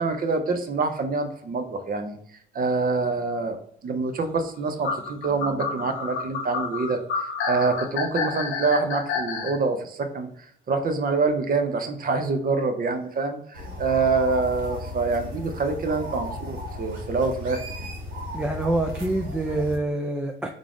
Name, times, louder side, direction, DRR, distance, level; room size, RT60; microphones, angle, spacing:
voice 1, 0.0-2.2 2.5-3.6 3.8-7.0 7.5-10.3 10.7-17.9, right 4 dB, 45° right, 7 dB, 0.7 m, -26 dB
sound 1, 4.8-9.5, left 5 dB, 80° left, 0.9 m, -29 dB
sound 2, 13.5-19.8, left 1 dB, 90° right, 1.2 m, -35 dB
voice 2, 18.3-20.5, right 2 dB, 5° right, 3 dB, 0.4 m, -26 dB
3.7 x 2.4 x 3.5 m, 0.65 s
cardioid pair, 90°, 20 cm